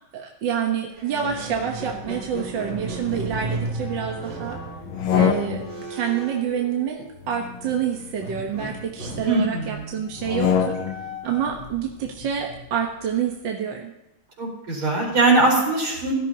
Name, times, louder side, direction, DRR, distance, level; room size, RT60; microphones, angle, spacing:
voice 1, 0.1-4.6 5.1-10.8 11.2-13.9, right 8 dB, 65° right, 1 dB, 1.9 m, -27 dB
Squeak, 0.9-7.3 8.2-13.4, right 1 dB, 35° right, 5.6 m, -35 dB
sound 1, 4.8-5.9 7.2-8.8 10.1-11.2, left 8 dB, 75° left, 1.6 m, -26 dB
voice 2, 9.2-9.9 14.4-16.1, right 2 dB, 80° right, -2 dB, 5.4 m, -21 dB
17.5 x 13.5 x 2.9 m, 0.90 s
omnidirectional pair, 2.3 m